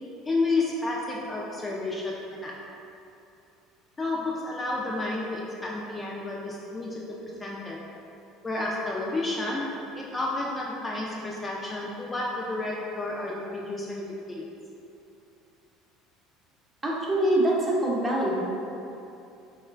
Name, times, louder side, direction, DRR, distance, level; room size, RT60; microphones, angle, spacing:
voice 1, 0.3-2.6 4.0-7.8 8.4-14.4, left 2 dB, 25° left, -4 dB, 0.3 m, -31 dB
voice 2, 16.8-18.4, right 1 dB, 20° right, -5 dB, 0.6 m, -24 dB
2.9 x 2.1 x 2.3 m, 2.7 s
hypercardioid pair, 65°, 0 cm